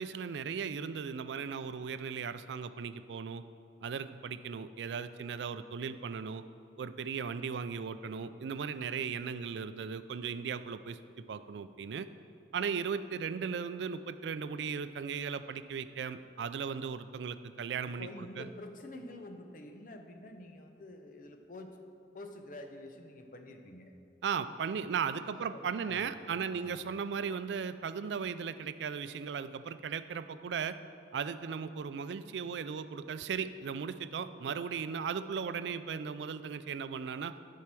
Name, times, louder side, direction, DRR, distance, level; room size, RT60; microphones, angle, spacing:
voice 1, 0.0-3.4 3.8-6.4 6.8-11.0 11.3-12.1 12.5-18.5 24.2-30.8 31.1-37.3, right 6 dB, 75° right, 12 dB, 0.4 m, -37 dB
voice 2, 18.0-21.9 22.1-23.9 25.5-27.1, left 1 dB, 50° left, 5 dB, 0.7 m, -48 dB
10.5 x 4.6 x 6.1 m, 2.6 s
head